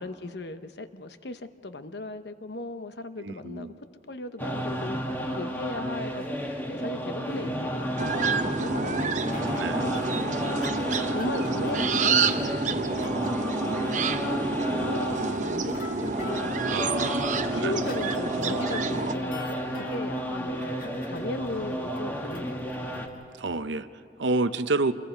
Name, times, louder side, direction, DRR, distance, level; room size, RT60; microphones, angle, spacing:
voice 1, 0.0-3.7 4.1-6.2 6.7-9.1 9.7-10.7 11.1-16.9 17.4-20.8 21.1-22.8, left 2 dB, 65° left, 10 dB, 0.9 m, -37 dB
voice 2, 3.2-3.8 9.6-9.9 16.7-17.8 23.4-23.9 24.2-24.9, right 3 dB, 80° right, 12 dB, 0.7 m, -29 dB
sound 1, 4.4-23.1, equal, 10° left, 1.4 m, -32 dB
sound 2, 8.0-19.1, right 4 dB, 40° right, 0.8 m, -28 dB
sound 3, 9.0-23.6, left 3 dB, 50° left, 1.8 m, -47 dB
28.0 x 22.0 x 4.5 m, 2.6 s
head